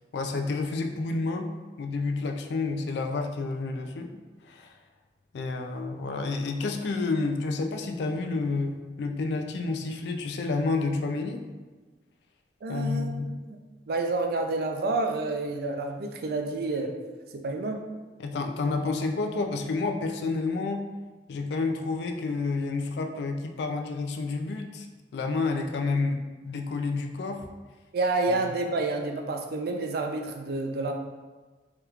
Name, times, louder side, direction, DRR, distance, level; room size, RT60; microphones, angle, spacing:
voice 1, 0.1-1.5 1.8-4.1 4.4-4.7 5.3-11.5 12.7-13.3 18.2-20.8 21.3-24.9 25.1-27.5 28.3-28.4, left 3 dB, 65° left, 5 dB, 0.3 m, -29 dB
voice 2, 12.6-13.1 13.4-13.6 13.9-16.9 17.3-17.9 27.9-30.9, right 2 dB, 60° right, 4 dB, 0.4 m, -29 dB
3.4 x 2.8 x 2.3 m, 1.3 s
head